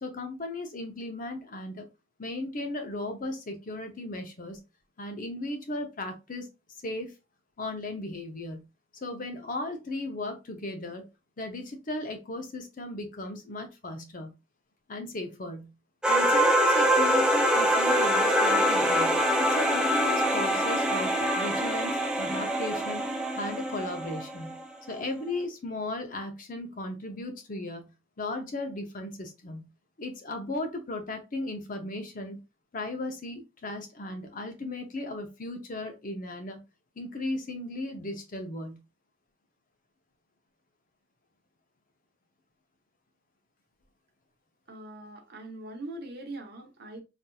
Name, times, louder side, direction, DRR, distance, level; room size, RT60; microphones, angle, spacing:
voice 1, 0.0-1.9 2.2-4.6 5.0-6.5 6.8-7.1 7.6-8.6 9.0-11.0 11.4-14.3 14.9-15.7 16.1-23.0 23.3-24.6 24.9-27.9 28.2-29.6 30.0-32.4 32.7-36.6 37.0-38.8, left 2 dB, 40° left, 0.6 m, -36 dB
sound 1, 16.0-24.6, equal, 5° right, 0.4 m, -24 dB
voice 2, 44.7-47.0, right 2 dB, 50° right, 0.9 m, -41 dB
4.1 x 2.5 x 2.3 m
head